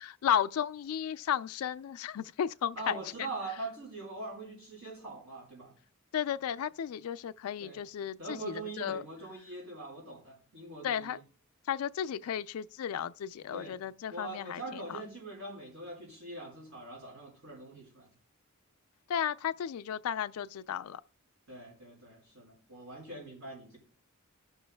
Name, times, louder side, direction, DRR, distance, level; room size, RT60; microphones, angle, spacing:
voice 1, 0.0-3.0 6.1-9.0 10.8-11.2 11.7-15.0 19.1-21.0, left 9 dB, 75° left, 0.3 m, -34 dB
voice 2, 2.7-5.7 7.6-7.8 8.2-11.2 13.5-13.8 14.1-18.1 21.5-23.8, right 2 dB, 65° right, 4.6 m, -43 dB
15.5 x 6.0 x 2.2 m
head